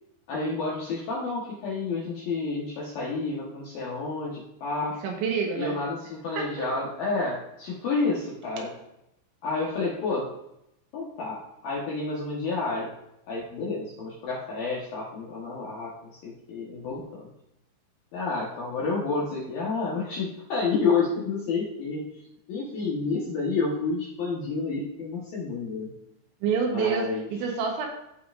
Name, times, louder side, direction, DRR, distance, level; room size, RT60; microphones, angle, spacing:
voice 1, 0.3-5.0 5.5-8.7 9.4-10.3 10.9-12.9 13.3-17.3 18.1-22.0 22.5-25.9 26.7-27.3, left 4 dB, 65° left, -4 dB, 2.4 m, -30 dB
voice 2, 5.0-5.8 6.4-6.7 26.4-27.9, right 5 dB, 75° right, 1 dB, 3.3 m, -27 dB
15.0 x 5.5 x 2.5 m, 0.83 s
omnidirectional pair, 5.7 m